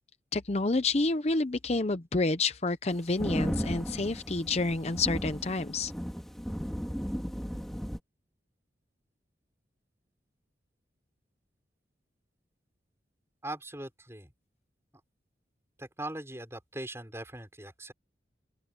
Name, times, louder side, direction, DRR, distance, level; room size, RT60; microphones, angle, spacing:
voice 1, 0.3-5.9, left 3 dB, 35° left, 0.7 m, -29 dB
sound 1, 2.9-8.0, equal, ahead, 2.7 m, -35 dB
voice 2, 13.4-14.3 15.8-17.9, right 1 dB, 15° right, 5.7 m, -40 dB
open air
head